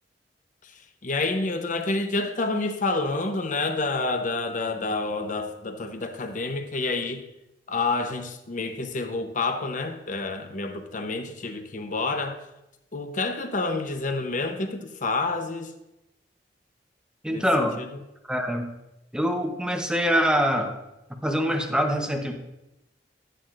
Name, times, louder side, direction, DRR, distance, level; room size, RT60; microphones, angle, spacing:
voice 1, 0.6-7.2 7.7-12.5 12.9-15.7 17.3-17.5 17.8-17.9, left 3 dB, 45° left, 7 dB, 0.8 m, -28 dB
voice 2, 17.2-17.8 18.2-18.6 19.1-20.8 21.2-22.3, equal, 5° right, 3 dB, 0.9 m, -24 dB
10.5 x 10.0 x 2.5 m, 0.89 s
head